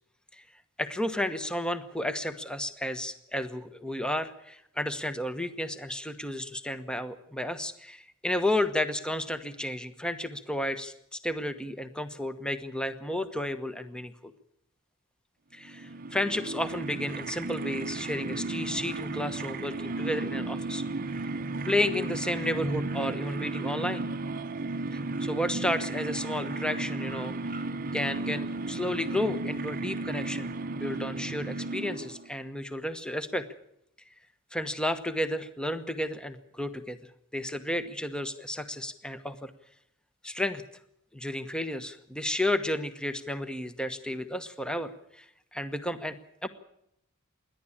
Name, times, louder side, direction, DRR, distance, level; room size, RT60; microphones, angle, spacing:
voice 1, 0.8-14.3 15.5-20.8 21.7-24.1 24.9-27.6 27.9-33.4 34.5-37.0 37.3-39.5 40.2-40.6 41.1-45.2 45.5-46.2 46.4-46.5, left 1 dB, 5° left, 10 dB, 1.1 m, -32 dB
sound 1, 15.6-32.3, right 3 dB, 40° right, 0.9 m, -34 dB
27.5 x 11.5 x 8.7 m, 0.76 s
head